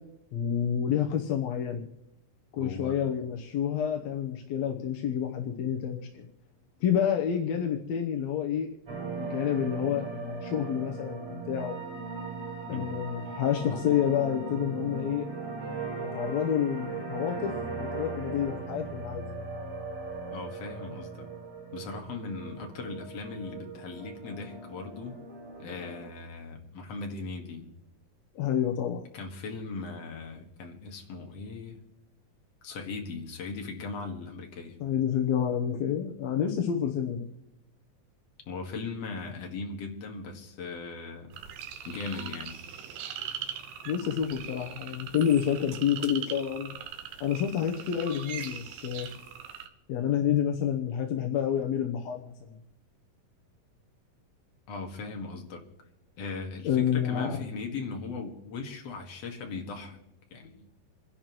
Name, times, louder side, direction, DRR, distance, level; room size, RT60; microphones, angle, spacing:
voice 1, 0.3-1.9 2.5-6.3 6.8-11.8 12.7-15.3 16.0-17.5 17.8-19.2 28.4-29.0 34.8-37.3 43.9-46.7 47.2-49.1 49.9-52.5 56.7-57.4, left 9 dB, 70° left, 2 dB, 1.8 m, -29 dB
voice 2, 2.6-3.1 12.7-13.0 20.3-21.3 21.7-25.2 25.6-27.6 29.1-31.8 32.6-34.8 38.5-41.4 41.8-42.6 54.7-55.7 56.2-60.0 60.3-60.7, left 4 dB, 50° left, 3 dB, 2.5 m, -38 dB
sound 1, 8.9-26.1, right 4 dB, 50° right, 5.8 m, -38 dB
sound 2, 41.3-49.7, right 8 dB, 80° right, 2.8 m, -41 dB
28.5 x 11.0 x 3.1 m, 0.91 s
omnidirectional pair, 3.9 m